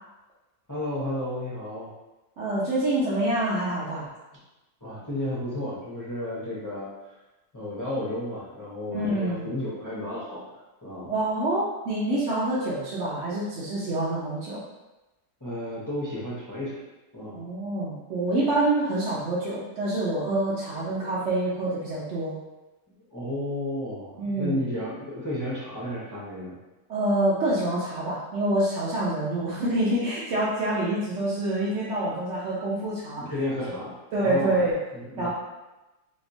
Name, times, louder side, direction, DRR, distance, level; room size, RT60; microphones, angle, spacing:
voice 1, 0.7-1.9 4.8-6.9 7.5-11.1 15.4-16.8 17.1-17.4 23.1-26.6 33.2-33.9 34.2-34.6 34.9-35.3, left 1 dB, 30° left, -8 dB, 0.3 m, -32 dB
voice 2, 2.4-4.1 8.9-9.4 11.0-14.6 17.3-22.3 24.2-24.6 26.9-33.3 34.1-34.8 35.2-35.3, right 1 dB, 65° right, -8 dB, 0.9 m, -26 dB
3.3 x 2.8 x 2.6 m, 1.1 s
omnidirectional pair, 1.5 m